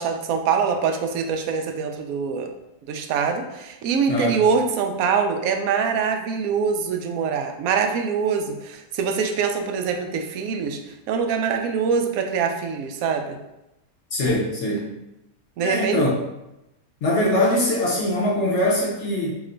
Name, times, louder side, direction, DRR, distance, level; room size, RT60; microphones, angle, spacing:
voice 1, 0.0-2.5 2.9-10.8 11.1-13.4 15.6-16.0, right 6 dB, 70° right, 4 dB, 0.9 m, -24 dB
voice 2, 4.1-4.4 14.1-14.9 15.6-16.1 17.0-19.3, left 1 dB, 55° left, -3 dB, 0.9 m, -22 dB
3.2 x 3.0 x 3.8 m, 0.92 s
omnidirectional pair, 1.7 m